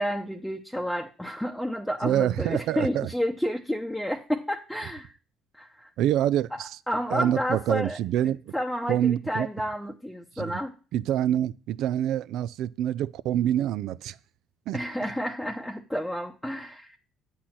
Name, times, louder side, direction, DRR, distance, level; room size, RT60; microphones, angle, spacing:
voice 1, 0.0-5.1 5.5-5.9 6.5-6.6 6.9-8.0 8.2-10.7 14.7-17.0, equal, 5° left, 0.8 m, -30 dB
voice 2, 2.0-3.1 6.0-6.8 7.1-8.5 8.9-9.5 10.4-10.6 10.9-14.2 14.7-14.8, right 11 dB, 70° right, 0.3 m, -26 dB
8.5 x 4.3 x 5.9 m
hypercardioid pair, 65°, 0 cm